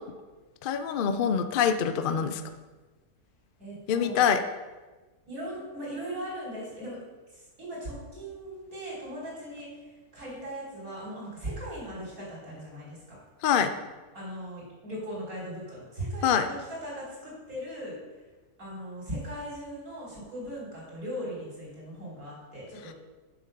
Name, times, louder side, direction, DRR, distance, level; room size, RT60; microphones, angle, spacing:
voice 1, 0.6-2.4 3.9-4.4 13.4-13.7 16.2-16.5, left 7 dB, 75° left, 9 dB, 0.4 m, -25 dB
voice 2, 3.6-4.3 5.3-7.0 7.3-9.7 10.1-13.2 14.1-18.0 18.6-22.9, equal, 65° right, -6 dB, 4.0 m, -38 dB
7.7 x 6.6 x 5.3 m, 1.3 s
omnidirectional pair, 1.7 m